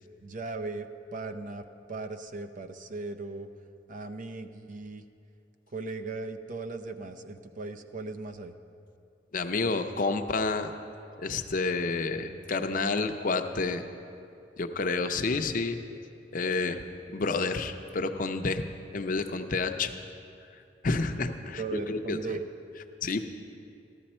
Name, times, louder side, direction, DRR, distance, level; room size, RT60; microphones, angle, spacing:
voice 1, 0.2-0.9 1.1-3.5 3.9-5.0 5.7-8.6 12.7-13.0 21.5-22.5, right 3 dB, 45° right, 7 dB, 0.6 m, -37 dB
voice 2, 9.3-10.7 11.2-13.9 14.6-15.8 16.3-16.8 17.1-18.7 18.9-19.9 20.8-22.2 23.0-23.3, left 3 dB, 50° left, 7 dB, 0.6 m, -29 dB
13.5 x 13.5 x 4.3 m, 2.6 s
head